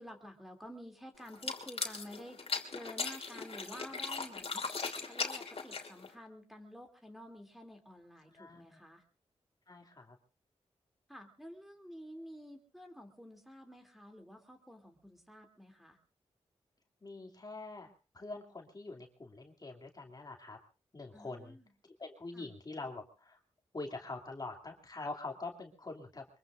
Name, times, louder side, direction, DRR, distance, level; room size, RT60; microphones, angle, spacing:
voice 1, 0.0-4.7 5.1-9.0 11.1-16.0 21.1-21.7 22.3-22.5, equal, ahead, 2 dB, 2.8 m, -51 dB
sound 1, 1.3-6.1, left 4 dB, 55° left, 3.0 m, -38 dB
voice 2, 8.3-8.8 9.7-10.2 17.0-20.6 20.9-21.6 22.0-23.4 23.7-26.3, left 3 dB, 35° left, 2 dB, 2.7 m, -45 dB
24.0 x 23.0 x 2.6 m, 0.34 s
cardioid pair, 75°, 12 cm